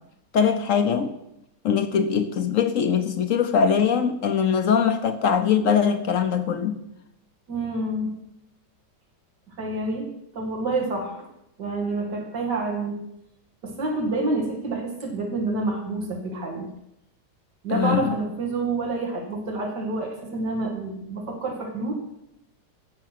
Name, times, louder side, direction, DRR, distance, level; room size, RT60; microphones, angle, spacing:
voice 1, 0.3-1.1 1.6-6.8 17.7-18.2, left 7 dB, 60° left, 9 dB, 1.0 m, -22 dB
voice 2, 7.5-8.1 9.6-11.3 11.6-13.0 13.6-16.7 17.6-21.9, right 2 dB, 90° right, 2 dB, 2.7 m, -28 dB
14.5 x 6.0 x 5.9 m, 0.83 s
omnidirectional pair, 1.8 m